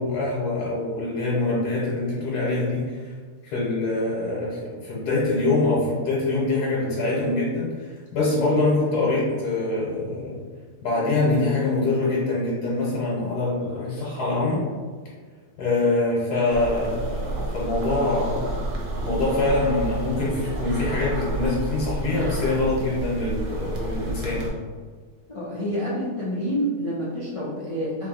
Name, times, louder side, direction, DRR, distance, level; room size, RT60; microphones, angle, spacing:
voice 1, 0.0-3.1 3.4-10.3 10.8-14.6 15.6-18.5 19.0-24.5, left 2 dB, 80° left, -7 dB, 1.6 m, -24 dB
sound 1, 16.5-24.5, right 2 dB, 60° right, 1.0 m, -30 dB
voice 2, 25.3-28.1, equal, 55° left, -8 dB, 0.3 m, -28 dB
3.2 x 2.7 x 4.0 m, 1.5 s
omnidirectional pair, 1.8 m